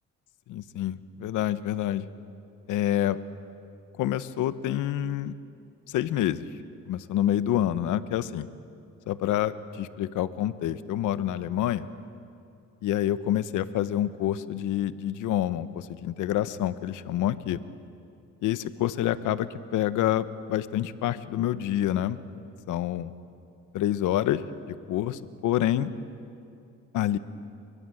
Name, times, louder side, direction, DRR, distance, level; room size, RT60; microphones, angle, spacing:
voice 1, 0.5-2.0 2.7-3.2 4.0-5.3 5.9-6.5 6.9-8.5 9.1-11.9 12.8-17.6 18.4-22.2 22.7-23.1 23.7-25.9 26.9-27.2, left 12 dB, 85° left, 14 dB, 1.0 m, -27 dB
29.5 x 23.0 x 7.8 m, 2.5 s
cardioid pair, 90°, 30 cm